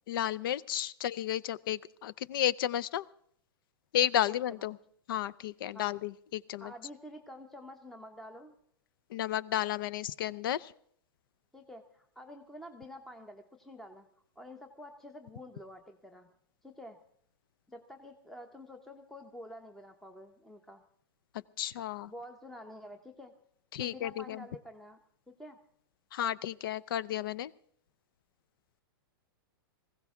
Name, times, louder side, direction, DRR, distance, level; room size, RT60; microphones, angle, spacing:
voice 1, 0.1-3.1 3.9-4.8 5.1-6.7 9.1-10.7 21.6-22.1 23.7-24.4 26.1-27.5, left 11 dB, 65° left, 22 dB, 0.6 m, -32 dB
voice 2, 4.3-4.7 5.7-6.0 6.6-8.5 11.5-14.1 14.4-16.3 16.6-17.0 17.7-20.8 22.1-23.3 23.8-25.0 25.3-25.6, left 1 dB, ahead, 5 dB, 0.7 m, -48 dB
20.5 x 16.0 x 3.6 m, 0.67 s
hypercardioid pair, 150°, 13 cm